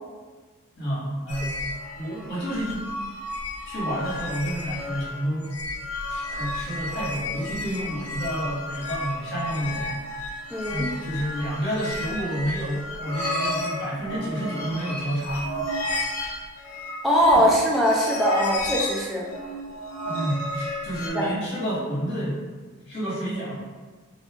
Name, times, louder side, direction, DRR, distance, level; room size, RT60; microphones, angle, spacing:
voice 1, 0.8-1.6 2.0-2.9 3.6-5.5 6.1-9.9 10.7-15.5 20.1-22.4 22.9-23.5, equal, 50° left, -8 dB, 1.2 m, -29 dB
sound 1, 1.3-21.1, left 1 dB, 80° left, 0.6 m, -32 dB
voice 2, 10.5-11.0 17.0-19.2 21.1-21.3, equal, ahead, -4 dB, 0.4 m, -21 dB
2.6 x 2.3 x 3.5 m, 1.4 s
head